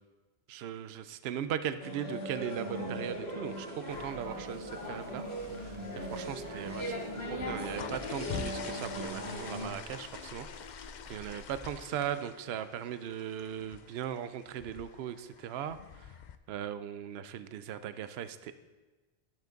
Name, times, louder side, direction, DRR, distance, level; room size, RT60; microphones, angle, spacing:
voice 1, 0.5-5.2 6.0-6.9 7.3-10.5 11.1-15.8 16.5-18.6, right 9 dB, 70° right, 12 dB, 0.8 m, -38 dB
sound 1, 1.8-9.7, equal, 70° left, 2.4 m, -39 dB
Crackle, 3.9-11.7, left 3 dB, 30° left, 0.8 m, -53 dB
sound 2, 7.4-16.4, left 7 dB, 55° left, 0.5 m, -45 dB
12.0 x 7.6 x 3.9 m, 1.2 s
omnidirectional pair, 1.1 m